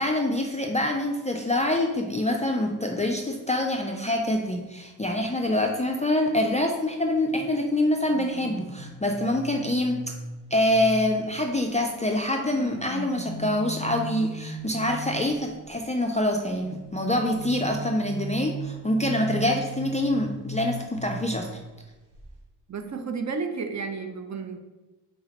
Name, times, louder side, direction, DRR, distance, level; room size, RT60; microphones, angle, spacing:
voice 1, 0.0-10.0 10.5-21.5, left 1 dB, 20° left, 2 dB, 0.3 m, -25 dB
sound 1, 8.1-11.7 12.3-15.6 16.6-21.8 22.1-22.4, right 3 dB, 70° right, 0.9 m, -37 dB
voice 2, 22.7-24.6, right 4 dB, 40° right, 6 dB, 0.6 m, -32 dB
3.8 x 2.9 x 4.0 m, 1.1 s
cardioid pair, 70°, 42 cm